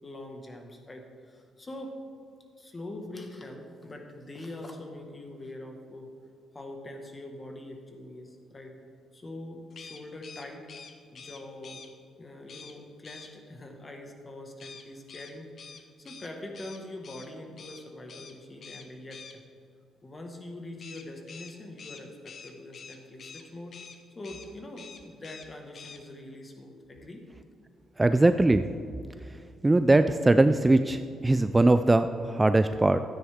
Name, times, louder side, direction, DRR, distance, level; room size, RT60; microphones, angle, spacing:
voice 1, 0.0-2.0 2.6-6.1 6.5-8.8 9.1-10.7 11.0-11.8 12.2-19.4 20.0-23.7 24.1-27.3, left 1 dB, 25° left, 3 dB, 1.6 m, -43 dB
sound 1, 9.7-11.9 12.5-12.7 13.0-13.3 14.6-17.3 17.6-17.8 18.1-18.3 18.6-19.3 20.8-23.4 23.7-24.0 24.2-24.5 24.8-25.5 25.7-26.0, left 5 dB, 50° left, 0.9 m, -46 dB
voice 2, 28.0-28.7 29.6-33.0, right 2 dB, 15° right, 10 dB, 0.3 m, -21 dB
13.0 x 9.4 x 3.6 m, 2.3 s
cardioid pair, 90°, 0 cm